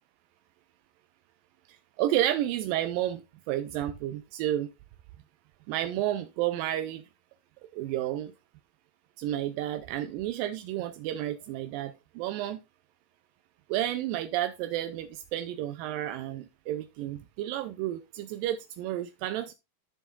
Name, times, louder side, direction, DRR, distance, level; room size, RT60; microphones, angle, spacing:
voice 1, 1.7-4.7 5.7-7.0 7.7-8.3 9.2-12.6 13.7-19.5, right 13 dB, 80° right, 2.1 m, -31 dB
13.0 x 6.9 x 2.4 m
omnidirectional pair, 4.4 m